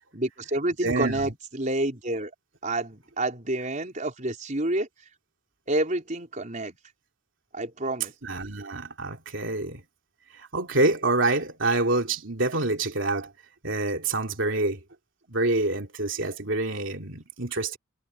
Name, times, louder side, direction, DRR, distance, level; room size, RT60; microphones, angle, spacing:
voice 1, 0.1-2.3 2.6-4.9 5.7-6.8 7.5-8.1, right 1 dB, 40° right, 4.7 m, -28 dB
voice 2, 0.8-1.3 8.2-9.8 10.4-13.3 13.6-14.8 15.3-17.8, right 2 dB, 65° right, 3.2 m, -26 dB
head